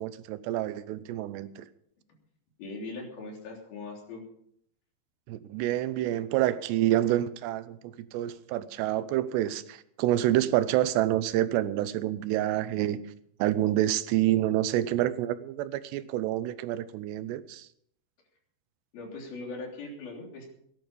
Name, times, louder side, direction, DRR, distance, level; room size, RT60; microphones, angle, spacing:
voice 1, 0.0-1.7 5.3-13.0 13.4-17.7, right 13 dB, 90° right, 14 dB, 3.0 m, -28 dB
voice 2, 2.6-4.2 18.9-20.5, left 3 dB, 60° left, 0 dB, 5.1 m, -40 dB
18.0 x 11.0 x 5.4 m, 0.67 s
omnidirectional pair, 4.8 m